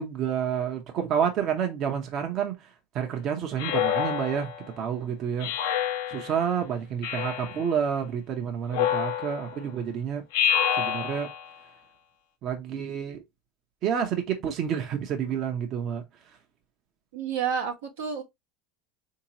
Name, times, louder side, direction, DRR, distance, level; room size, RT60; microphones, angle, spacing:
voice 1, 0.0-2.6 2.9-4.5 4.8-5.5 6.1-10.2 10.8-11.3 12.4-13.2 13.8-16.0, right 8 dB, 50° right, 0.8 m, -29 dB
Speech synthesizer, 3.6-4.7 5.4-6.4 7.0-7.7 8.7-9.6 10.3-11.5, left 9 dB, 75° left, 0.6 m, -28 dB
voice 2, 17.1-18.2, right 7 dB, 85° right, 1.1 m, -30 dB
3.8 x 2.9 x 2.9 m
supercardioid pair, 100°, 0 cm